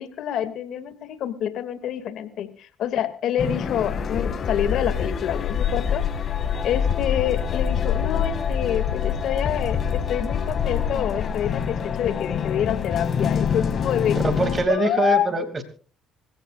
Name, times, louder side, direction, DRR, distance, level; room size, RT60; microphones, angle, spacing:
voice 1, 0.0-6.0 6.6-14.2 14.7-15.3, left 10 dB, 65° left, 10 dB, 2.4 m, -27 dB
sound 1, 3.4-14.6, left 7 dB, 50° left, 2.3 m, -25 dB
voice 2, 14.2-15.6, right 3 dB, 35° right, 8 dB, 2.8 m, -23 dB
26.0 x 16.0 x 2.5 m, 0.38 s
supercardioid pair, 80°, 0 cm